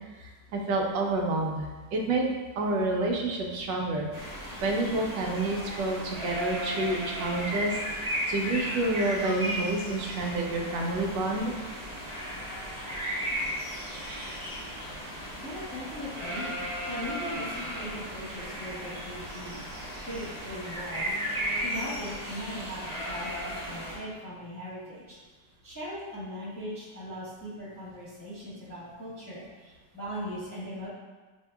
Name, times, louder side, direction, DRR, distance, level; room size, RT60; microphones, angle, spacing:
voice 1, 0.2-4.3 4.6-11.5, right 2 dB, 90° right, 0 dB, 1.3 m, -29 dB
sound 1, 4.1-24.0, equal, 35° right, 0.7 m, -35 dB
voice 2, 15.4-16.5 16.9-19.6 20.0-21.1 21.6-25.2 25.6-30.9, equal, 15° left, -10 dB, 0.7 m, -39 dB
5.6 x 2.7 x 2.2 m, 1.3 s
omnidirectional pair, 1.9 m